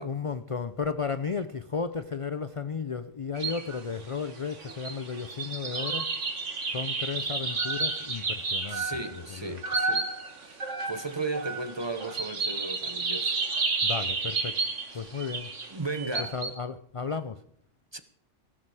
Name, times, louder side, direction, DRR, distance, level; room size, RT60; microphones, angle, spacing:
voice 1, 0.0-6.1 6.6-8.9 9.1-9.6 13.8-15.5 16.2-17.4, left 5 dB, 40° left, 0.5 m, -34 dB
sound 1, 3.4-3.8 4.1-16.5, right 3 dB, 75° right, 2.1 m, -31 dB
voice 2, 8.7-10.1 10.4-13.4 15.7-16.4 17.9-18.0, right 3 dB, 25° right, 0.8 m, -35 dB
18.0 x 12.0 x 4.8 m
omnidirectional pair, 1.3 m